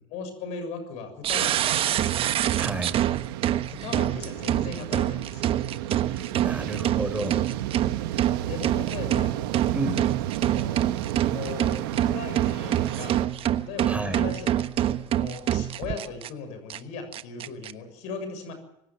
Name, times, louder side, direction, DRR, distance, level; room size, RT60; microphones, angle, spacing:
voice 1, 0.1-2.0 3.7-5.6 8.4-9.4 10.4-10.9 11.3-13.2 13.6-18.5, left 5 dB, 70° left, 8 dB, 6.9 m, -38 dB
sound 1, 1.2-16.3 16.7-16.8 17.1-17.7, right 11 dB, 50° right, 1.2 m, -26 dB
sound 2, 1.4-13.3, right 14 dB, 80° right, 1.5 m, -33 dB
voice 2, 2.6-3.1 6.4-7.4 9.7-10.0 13.9-14.2, right 2 dB, 10° right, 7 dB, 5.8 m, -31 dB
25.0 x 16.5 x 7.5 m, 0.83 s
supercardioid pair, 85°, 12 cm